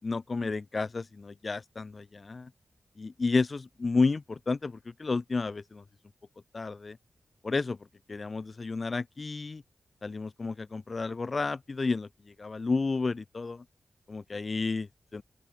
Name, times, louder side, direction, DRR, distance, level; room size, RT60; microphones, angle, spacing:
voice 1, 0.0-2.5 3.0-5.8 6.5-7.0 7.4-7.8 8.1-9.6 10.0-12.1 12.4-13.6 14.1-15.2, left 3 dB, 45° left, 5.4 m, -31 dB
open air
cardioid pair, 70°, 0 cm